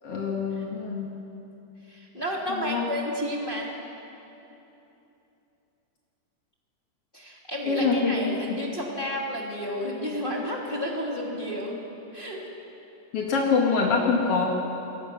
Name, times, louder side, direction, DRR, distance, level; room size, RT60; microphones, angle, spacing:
voice 1, 0.0-1.1 2.5-2.8 7.7-8.6 13.1-14.4, left 4 dB, 65° left, -1 dB, 1.5 m, -25 dB
voice 2, 1.9-3.7 7.1-11.7 12.1-12.5, equal, 25° left, -3 dB, 1.2 m, -31 dB
28.0 x 21.5 x 6.1 m, 2.9 s
omnidirectional pair, 5.8 m